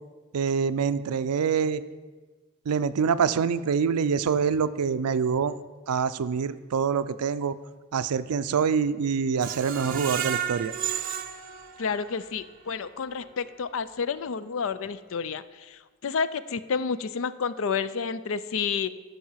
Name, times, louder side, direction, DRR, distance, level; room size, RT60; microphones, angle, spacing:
voice 1, 0.3-1.8 2.7-5.6 5.9-7.6 7.9-10.7, right 6 dB, 85° right, 14 dB, 0.4 m, -25 dB
Screech, 9.4-12.4 12.8-12.9 13.3-13.4, right 9 dB, 40° right, 0.6 m, -33 dB
voice 2, 11.8-18.9, left 5 dB, 60° left, 15 dB, 0.4 m, -30 dB
14.0 x 5.5 x 5.7 m, 1.4 s
head